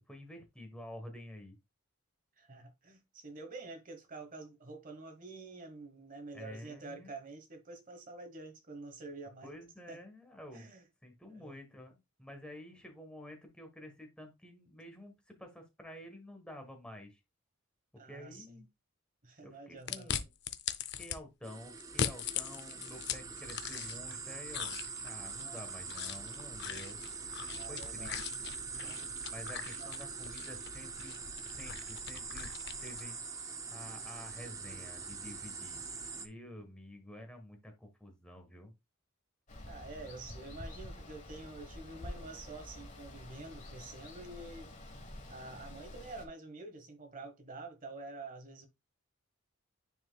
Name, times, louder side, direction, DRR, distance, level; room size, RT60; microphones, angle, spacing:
voice 1, 0.1-1.6 6.3-7.1 9.4-10.7 11.0-17.2 18.1-18.7 19.4-20.3 21.0-27.0 27.7-28.6 29.3-31.2 31.6-32.5 32.8-33.2 33.7-35.8 36.2-38.7, left 1 dB, 5° left, 1.3 m, -50 dB
voice 2, 2.4-9.5 9.9-10.0 10.5-10.8 11.3-11.5 18.0-18.6 19.2-20.1 25.4-25.7 27.5-28.2 28.7-29.1 29.7-29.9 36.4-36.7 39.7-44.7 45.3-48.7, right 3 dB, 40° right, 1.2 m, -48 dB
sound 1, 19.9-21.2 21.8-24.2 24.5-33.1, left 8 dB, 50° left, 0.6 m, -40 dB
sound 2, 21.4-36.3, right 5 dB, 15° right, 0.5 m, -43 dB
Water, 39.5-46.3, left 1 dB, 35° left, 1.3 m, -48 dB
9.7 x 4.5 x 2.3 m
head